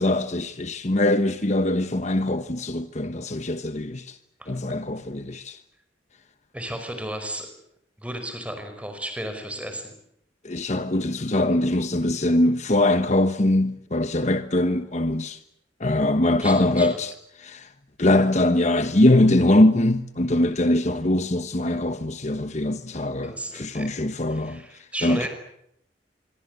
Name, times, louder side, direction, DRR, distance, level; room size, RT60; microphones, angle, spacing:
voice 1, 0.0-4.2 4.5-5.6 10.4-15.4 15.8-17.1 17.4-17.7 18.0-25.3, left 1 dB, 40° left, 1.2 m, -22 dB
voice 2, 6.5-7.5 8.0-9.8 16.4-16.9 23.2-23.9 24.3-25.3, right 1 dB, 5° right, 5.4 m, -34 dB
26.5 x 23.5 x 8.1 m
head